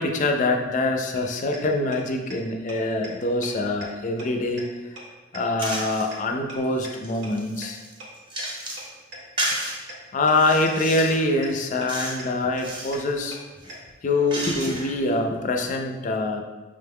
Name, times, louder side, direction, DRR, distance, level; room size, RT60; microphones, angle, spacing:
voice 1, 0.0-4.7 5.3-7.8 10.1-13.4 14.0-16.4, left 2 dB, 40° left, 4 dB, 0.4 m, -24 dB
sound 1, 1.1-1.2 1.5-1.6 1.9-2.0 2.3-2.4 2.7-2.8 3.0-3.1 3.4-3.5 3.8-3.9 4.2-4.3 4.6-4.7 5.0-5.1 5.3-5.4 5.7-5.8 6.1-6.2 6.5-6.6 6.8-6.9 7.2-7.3 7.6-7.7 8.0-8.1 8.4-8.5 8.8-8.9 9.1-9.2 9.5-9.6 9.9-10.0 10.3-10.4 10.7-10.8 11.0-11.1 11.4-11.5 11.8-11.9 12.2-12.3 12.6-12.7 12.9-13.0 13.3-13.4 13.7-13.8, right 2 dB, 65° right, 0.9 m, -39 dB
sound 2, 5.6-6.1 6.6-8.9 9.4-9.8 10.3-11.2 11.9-12.2 12.5-13.0 13.6-15.0, right 1 dB, 25° right, 0.8 m, -32 dB
5.1 x 2.2 x 3.4 m, 1.2 s
head